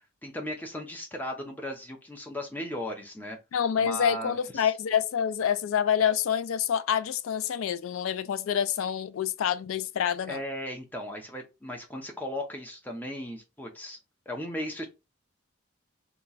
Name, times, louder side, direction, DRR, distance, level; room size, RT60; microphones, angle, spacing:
voice 1, 0.2-3.4 3.8-4.7 10.2-14.0 14.3-14.9, left 1 dB, 10° left, 0.6 m, -36 dB
voice 2, 3.5-10.4, left 8 dB, 90° left, 0.3 m, -27 dB
3.0 x 2.3 x 4.0 m
head